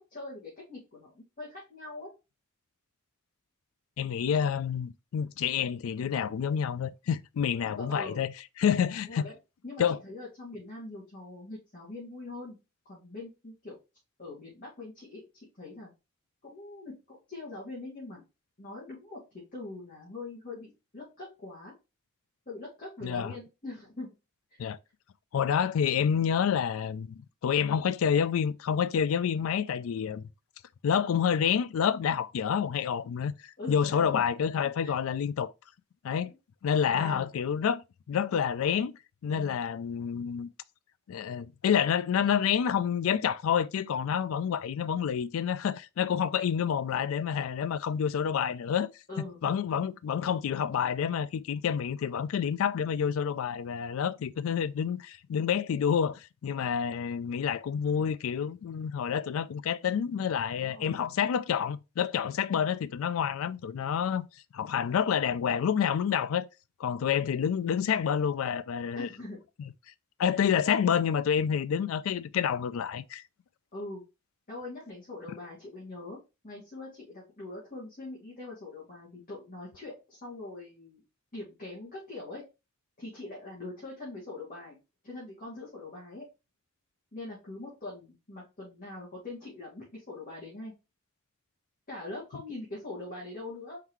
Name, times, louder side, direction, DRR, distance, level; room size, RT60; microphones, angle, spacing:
voice 1, 0.1-2.1 7.8-8.3 9.1-9.4 9.6-12.6 12.9-13.8 14.2-15.2 15.6-15.9 16.4-18.2 18.6-21.7 22.5-24.1 24.5-24.6 33.6-34.2 34.8-34.9 36.9-37.3 49.1-49.4 60.5-61.1 68.9-69.4 73.7-74.0 74.5-76.2 76.4-81.0 81.3-82.4 83.0-84.8 85.0-86.3 87.1-90.7 91.9-93.8, left 2 dB, 40° left, 2.1 m, -42 dB
voice 2, 4.0-8.3 8.6-9.3 9.8-10.0 23.0-23.3 24.6-24.8 25.3-30.2 30.8-35.5 36.0-36.3 36.6-37.8 38.1-38.9 39.2-40.5 41.1-48.9 49.4-64.3 64.5-66.5 66.8-69.1 70.2-73.2, left 8 dB, 70° left, 0.3 m, -28 dB
4.5 x 3.9 x 3.0 m
head